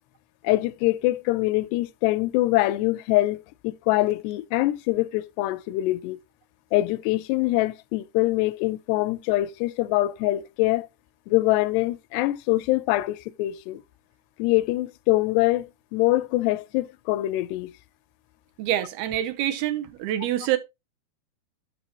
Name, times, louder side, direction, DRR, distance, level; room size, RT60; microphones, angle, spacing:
voice 1, 0.4-6.2 6.7-10.9 11.3-13.8 14.4-17.7, left 18 dB, 85° left, 2.6 m, -24 dB
voice 2, 18.6-20.6, right 12 dB, 80° right, 2.5 m, -26 dB
9.7 x 7.0 x 2.8 m
omnidirectional pair, 4.7 m